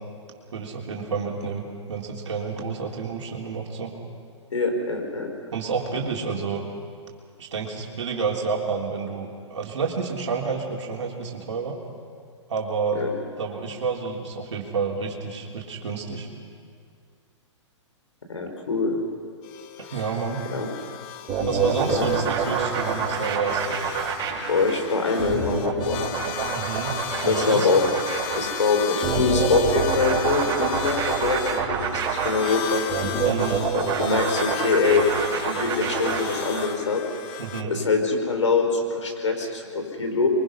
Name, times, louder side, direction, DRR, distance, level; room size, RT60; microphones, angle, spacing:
voice 1, 0.5-3.9 5.5-6.6 7.4-11.8 12.5-13.0 13.4-16.3 19.9-20.4 21.5-23.8 26.5-26.9 27.2-27.7 33.2-33.7 37.4-37.7, right 5 dB, 70° right, -1 dB, 3.4 m, -29 dB
voice 2, 4.5-5.3 12.9-13.1 18.3-19.0 19.9-20.0 20.5-20.7 21.9-22.2 24.3-26.0 27.3-27.8 28.3-32.8 33.7-35.1 35.3-37.0 37.6-40.3, left 4 dB, 75° left, 4 dB, 4.7 m, -24 dB
sound 1, 19.4-37.6, left 9 dB, 35° left, 1.3 m, -35 dB
sound 2, 21.3-36.7, right 6 dB, 25° right, 5.4 m, -26 dB
26.5 x 23.5 x 5.7 m, 2.2 s
figure-of-eight pair, 120°, 16 cm